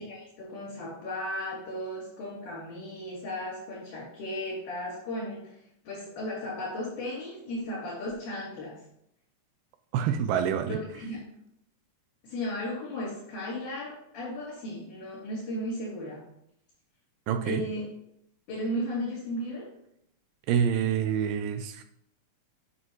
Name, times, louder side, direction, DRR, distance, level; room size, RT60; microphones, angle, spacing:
voice 1, 0.1-5.5 5.8-8.7 10.7-11.2 12.2-16.2 17.4-17.8 18.5-19.7, left 1 dB, 70° left, -11 dB, 5.0 m, -35 dB
voice 2, 9.9-10.8 17.3-17.6 20.5-21.8, right 8 dB, 90° right, 7 dB, 2.3 m, -27 dB
9.9 x 6.4 x 3.1 m, 0.75 s
omnidirectional pair, 3.8 m